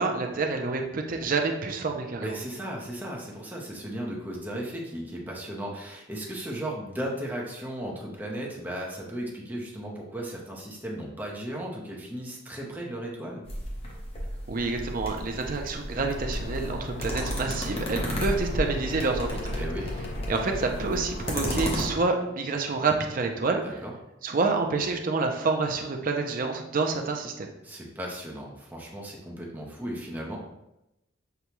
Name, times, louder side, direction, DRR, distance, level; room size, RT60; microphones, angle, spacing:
voice 1, 0.0-2.4 14.5-19.5 20.3-23.8 24.2-27.5, right 3 dB, 45° right, 3 dB, 0.5 m, -28 dB
voice 2, 2.2-13.4 19.5-19.9 23.6-23.9 27.6-30.4, right 1 dB, 10° right, -2 dB, 0.7 m, -36 dB
sound 1, 13.4-21.8, equal, 30° left, 0.9 m, -34 dB
sound 2, 16.0-22.0, left 2 dB, 50° left, 0.3 m, -36 dB
6.6 x 2.3 x 3.0 m, 0.90 s
head